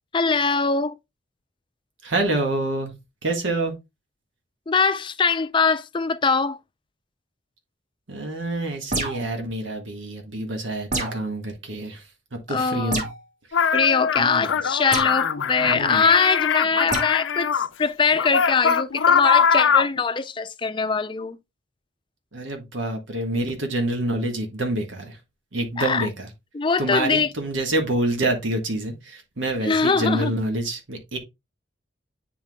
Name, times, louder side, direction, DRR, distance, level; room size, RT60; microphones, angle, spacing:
voice 1, 0.1-0.9 4.7-6.6 12.5-13.0 13.7-17.5 17.8-21.4 25.8-26.1 26.5-27.3 29.6-30.3, left 5 dB, 25° left, 0.4 m, -22 dB
voice 2, 2.0-2.9 3.2-3.7 8.1-12.0 12.5-13.0 14.2-14.5 15.7-16.1 22.3-25.2 25.5-26.3 26.8-31.2, right 2 dB, 85° right, 1.6 m, -27 dB
sound 1, 8.9-9.4 10.9-11.3 12.9-13.2 14.9-15.2 16.9-17.1, right 2 dB, 40° right, 1.6 m, -27 dB
sound 2, 13.5-17.7 18.1-20.0, left 6 dB, 85° left, 0.5 m, -22 dB
9.7 x 4.6 x 2.3 m
head